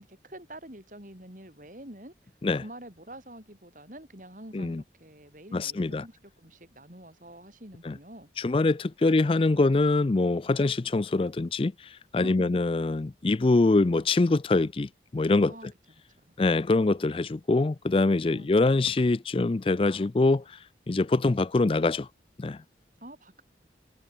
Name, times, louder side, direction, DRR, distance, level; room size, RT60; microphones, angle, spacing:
voice 1, 0.0-2.1 2.6-8.3 9.0-9.1 12.2-12.6 15.4-15.7 16.3-16.4 18.3-18.5 23.0-23.4, right 1 dB, 45° right, 7.5 m, -46 dB
voice 2, 5.5-6.0 7.8-8.0 8.4-15.7 16.4-22.1 22.4-22.6, left 3 dB, 30° left, 0.4 m, -24 dB
head